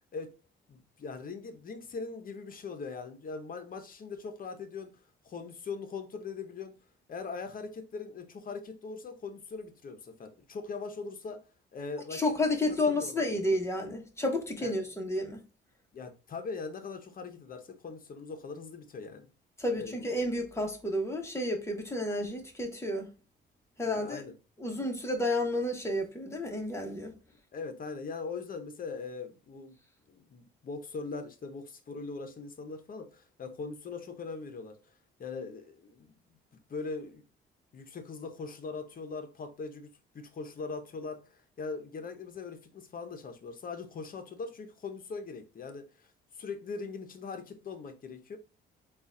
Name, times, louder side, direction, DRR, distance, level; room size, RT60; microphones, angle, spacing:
voice 1, 0.7-4.9 5.2-6.8 7.1-11.4 11.7-12.2 12.7-13.4 14.6-14.8 15.9-19.3 19.7-19.9 23.8-24.3 27.5-29.8 30.1-34.8 35.2-36.1 36.7-37.2 37.7-39.9 40.1-48.4, left 4 dB, 45° left, 0.9 m, -41 dB
voice 2, 12.1-15.4 19.6-23.1 23.8-24.2 24.6-27.1, left 1 dB, 15° left, 1.3 m, -31 dB
3.9 x 2.5 x 3.7 m
cardioid pair, 90°, 20 cm